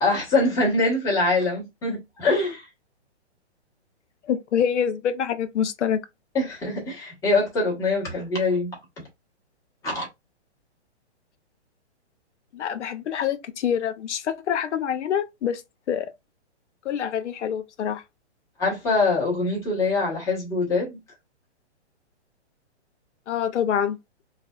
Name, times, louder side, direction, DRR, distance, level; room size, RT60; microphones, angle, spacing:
voice 1, 0.0-2.6 6.3-8.7 9.8-10.1 18.6-21.0, left 3 dB, 10° left, 0.9 m, -23 dB
voice 2, 4.2-6.0 12.5-15.6 15.9-16.1 16.8-18.0 23.3-24.0, left 8 dB, 85° left, 0.5 m, -26 dB
3.2 x 2.0 x 2.2 m
hypercardioid pair, 155°, 34 cm